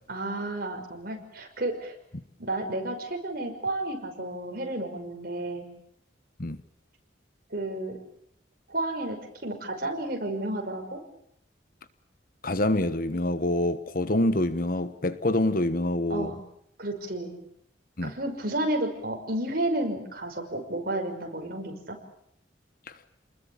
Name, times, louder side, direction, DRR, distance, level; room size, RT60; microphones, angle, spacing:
voice 1, 0.1-1.9 2.4-5.7 7.5-8.0 8.7-11.0 16.1-16.4 16.8-17.3 18.0-22.0, right 1 dB, 50° right, 5.8 m, -31 dB
voice 2, 12.4-16.3 18.0-18.2 22.9-23.0, left 1 dB, 50° left, 1.3 m, -26 dB
29.0 x 21.0 x 8.7 m
head